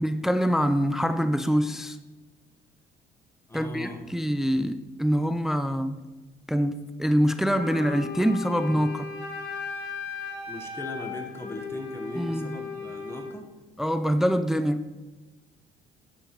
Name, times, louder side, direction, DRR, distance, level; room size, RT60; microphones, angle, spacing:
voice 1, 0.0-2.0 3.5-6.0 6.5-9.1 12.2-12.5 13.8-15.0, equal, ahead, 11 dB, 0.4 m, -25 dB
voice 2, 3.5-4.0 10.5-13.5, left 2 dB, 15° left, 4 dB, 1.2 m, -39 dB
Wind instrument woodwind instrument, 7.4-13.3, left 5 dB, 75° left, 2.5 m, -37 dB
12.0 x 8.8 x 3.1 m, 1.2 s
cardioid pair, 105°, 17 cm